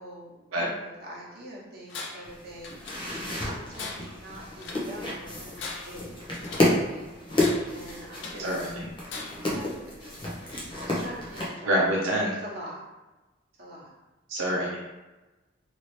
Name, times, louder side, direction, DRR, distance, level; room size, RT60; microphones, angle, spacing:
voice 1, 0.0-6.1 6.4-8.5 9.3-10.2 10.7-11.8 12.4-12.8 13.6-13.9, equal, 50° right, -5 dB, 1.0 m, -44 dB
Tools, 1.9-2.3 2.6-3.3 3.7-4.9 5.4-6.8 7.3-8.5 9.1-9.6, left 3 dB, 60° left, 0.5 m, -40 dB
sound 1, 2.2-11.5, left 1 dB, 25° left, 0.7 m, -31 dB
voice 2, 8.4-8.8 11.6-12.3 14.3-14.8, equal, 85° right, -3 dB, 0.6 m, -26 dB
2.9 x 2.7 x 3.2 m, 1.1 s
head